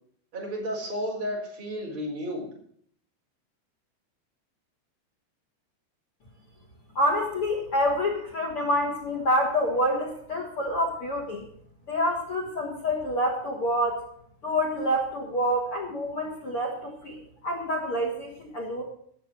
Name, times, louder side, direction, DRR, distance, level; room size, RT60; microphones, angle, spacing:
voice 1, 0.3-2.5, equal, 25° right, -2 dB, 4.7 m, -32 dB
voice 2, 6.9-11.4 11.9-14.0 14.4-18.8, equal, 60° left, 2 dB, 1.4 m, -27 dB
15.0 x 6.6 x 7.6 m, 0.63 s
omnidirectional pair, 5.7 m